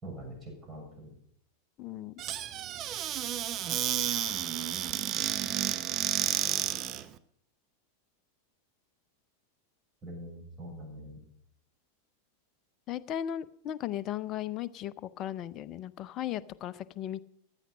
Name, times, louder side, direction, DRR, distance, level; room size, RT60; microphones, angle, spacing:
voice 1, 0.0-1.1 10.0-11.2, right 1 dB, 15° right, 1 dB, 6.9 m, -44 dB
voice 2, 1.8-2.1 12.9-17.2, left 11 dB, 35° left, 16 dB, 0.6 m, -36 dB
Squeak / Cupboard open or close, 2.2-7.0, right 11 dB, 35° right, 0.8 m, -31 dB
15.0 x 11.5 x 5.5 m, 0.67 s
figure-of-eight pair, 90°, 0 cm